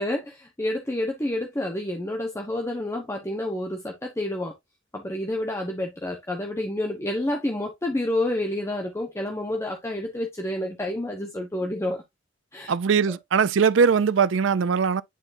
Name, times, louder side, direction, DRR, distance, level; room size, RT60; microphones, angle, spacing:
voice 1, 0.0-4.5 4.9-12.0 12.5-12.7, left 1 dB, 15° left, 1.0 m, -29 dB
voice 2, 12.7-15.0, right 6 dB, 70° right, 0.4 m, -21 dB
10.0 x 4.1 x 2.7 m
head